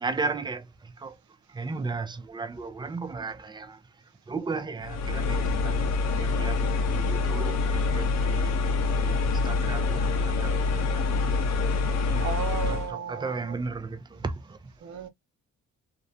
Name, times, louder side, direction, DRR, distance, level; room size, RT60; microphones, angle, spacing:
voice 1, 0.0-1.2 1.5-3.8 4.3-5.8 6.1-11.2 12.0-12.3 12.7-14.6, right 4 dB, 15° right, 0.4 m, -35 dB
sound 1, 4.8-12.9, left 4 dB, 60° left, 0.7 m, -26 dB
voice 2, 12.2-13.6 14.8-15.1, right 7 dB, 70° right, 0.8 m, -34 dB
2.5 x 2.0 x 2.7 m
cardioid pair, 90°, 30 cm